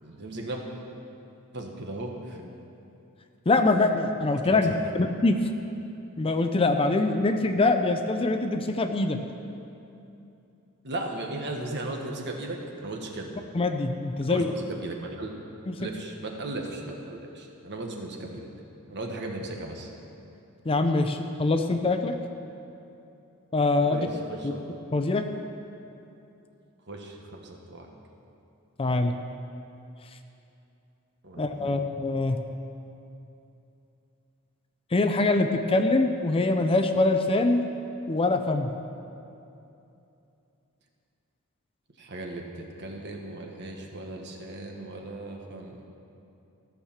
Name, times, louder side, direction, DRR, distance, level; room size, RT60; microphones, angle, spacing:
voice 1, 0.0-0.6 1.5-2.5 4.4-4.9 10.8-13.3 14.2-15.3 15.8-18.4 18.9-19.9 23.8-24.6 26.9-27.9 31.2-31.9 42.0-45.9, right 2 dB, 50° right, 1 dB, 1.4 m, -37 dB
voice 2, 3.5-5.4 6.2-9.2 13.5-14.5 15.7-15.9 20.7-22.2 23.5-24.0 24.4-24.5 24.9-25.3 28.8-29.1 31.4-32.4 34.9-37.6 38.1-38.7, left 2 dB, 25° left, 7 dB, 0.5 m, -24 dB
14.5 x 6.5 x 7.3 m, 2.8 s
head